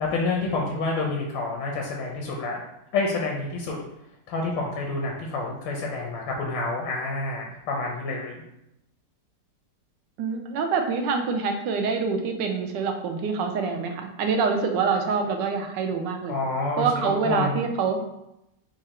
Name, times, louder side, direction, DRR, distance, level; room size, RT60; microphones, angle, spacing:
voice 1, 0.0-2.6 2.9-3.7 4.3-8.4 16.3-17.6, left 3 dB, 85° left, -1 dB, 1.5 m, -28 dB
voice 2, 10.2-16.4 16.8-18.0, right 5 dB, 80° right, 4 dB, 1.3 m, -26 dB
4.7 x 2.4 x 4.2 m, 0.86 s
omnidirectional pair, 2.0 m